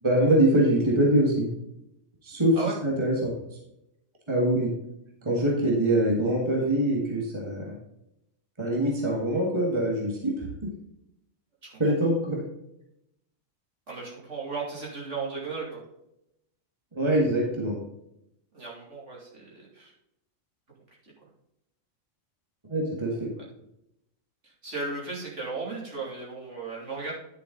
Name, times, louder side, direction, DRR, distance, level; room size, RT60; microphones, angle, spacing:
voice 1, 0.0-1.5 2.2-2.6 2.8-3.3 4.3-4.7 5.2-7.8 8.6-10.7 11.8-12.4 16.9-17.8 22.7-23.3, right 1 dB, 20° right, 0 dB, 1.9 m, -24 dB
voice 2, 13.9-15.8 18.5-19.9 24.4-27.1, right 4 dB, 60° right, -5 dB, 3.4 m, -35 dB
10.0 x 6.9 x 3.9 m, 0.83 s
omnidirectional pair, 1.4 m